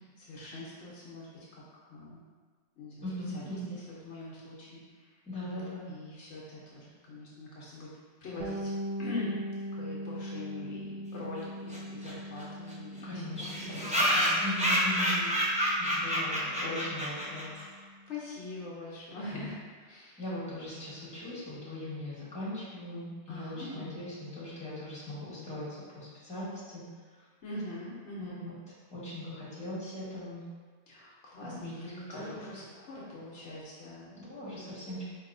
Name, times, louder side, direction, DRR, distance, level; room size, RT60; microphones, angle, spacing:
voice 1, 0.2-2.2 2.8-3.1 3.3-5.1 5.9-7.9 8.2-8.7 9.0-9.4 9.7-13.8 14.9-15.4 18.1-20.2 23.3-23.9 27.4-28.4 30.9-34.2, left 2 dB, 70° left, -6 dB, 1.0 m, -43 dB
voice 2, 3.0-3.7 5.3-5.9 13.0-15.1 15.8-17.6 19.3-19.5 20.2-25.7 25.9-26.8 28.2-28.5 28.9-30.4 31.4-31.7 32.1-32.2 34.1-35.0, left 1 dB, 5° left, -10 dB, 1.2 m, -39 dB
Bass guitar, 8.4-18.0, equal, 55° right, 0.7 m, -41 dB
sound 1, 11.7-11.8 12.0-12.1 12.4-12.5 12.7-12.8 13.4-17.6, equal, 10° right, 0.4 m, -28 dB
4.7 x 2.7 x 2.5 m, 1.5 s
omnidirectional pair, 1.2 m